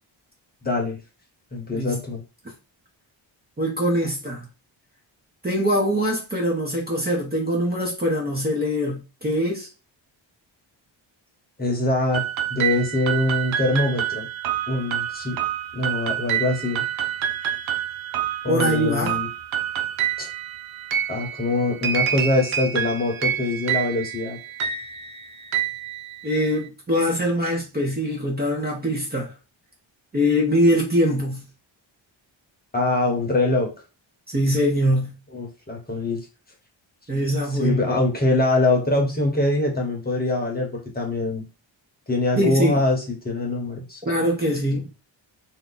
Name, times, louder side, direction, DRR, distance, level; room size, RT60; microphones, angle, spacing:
voice 1, 0.6-1.0 1.5-2.2 11.6-12.2 12.5-14.3 14.7-15.4 15.7-16.9 18.4-19.3 20.2-20.3 21.1-24.4 32.7-33.7 35.3-36.2 37.6-41.4 42.1-44.0, left 2 dB, 20° left, 1.0 m, -23 dB
voice 2, 3.6-4.5 5.4-9.7 18.5-19.2 26.2-29.3 30.1-31.4 34.3-35.1 37.1-37.9 42.4-42.8 44.0-44.9, equal, 20° right, 0.8 m, -23 dB
sound 1, 12.1-26.6, right 9 dB, 80° right, 0.7 m, -28 dB
2.8 x 2.3 x 3.9 m
wide cardioid pair, 115°, 47 cm